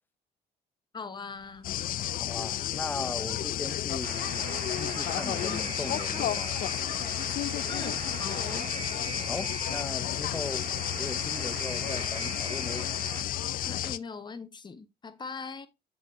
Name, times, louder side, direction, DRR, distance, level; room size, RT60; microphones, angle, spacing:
voice 1, 0.9-1.7 7.7-8.7 13.6-15.7, left 5 dB, 25° left, 1.3 m, -41 dB
sound 1, 1.3-12.3, right 3 dB, 90° right, 2.5 m, -57 dB
sound 2, 1.6-14.0, left 12 dB, 55° left, 0.5 m, -32 dB
voice 2, 2.1-4.2 4.7-6.6 9.3-10.7 11.0-12.9, left 3 dB, 10° left, 0.6 m, -38 dB
Alarm, 4.0-13.2, right 6 dB, 50° right, 1.7 m, -41 dB
7.6 x 7.5 x 2.7 m
cardioid pair, 110°, 17 cm